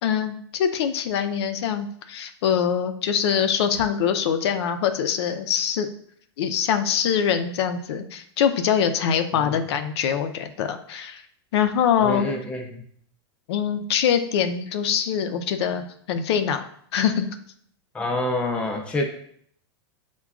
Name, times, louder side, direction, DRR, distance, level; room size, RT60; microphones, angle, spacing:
voice 1, 0.0-5.9 6.4-11.2 11.5-12.3 13.5-16.6 16.9-17.3, left 8 dB, 75° left, 8 dB, 0.4 m, -23 dB
voice 2, 12.0-12.8 17.9-19.0, left 2 dB, 10° left, 2 dB, 0.4 m, -27 dB
5.8 x 2.2 x 2.3 m, 0.64 s
supercardioid pair, 145°, 14 cm